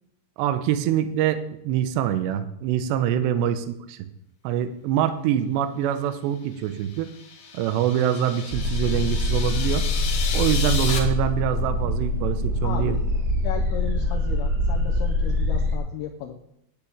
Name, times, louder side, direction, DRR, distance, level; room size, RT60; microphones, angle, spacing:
voice 1, 0.4-4.1 4.4-7.1 7.5-9.8 10.3-13.0, right 10 dB, 80° right, 10 dB, 2.7 m, -25 dB
sound 1, 6.8-11.0, left 6 dB, 60° left, 2.6 m, -33 dB
sound 2, 8.5-15.8, left 1 dB, 60° right, 2.6 m, -24 dB
voice 2, 12.6-13.0 13.4-16.4, left 10 dB, 85° left, 1 dB, 2.3 m, -35 dB
10.5 x 5.9 x 8.5 m, 0.79 s
omnidirectional pair, 5.5 m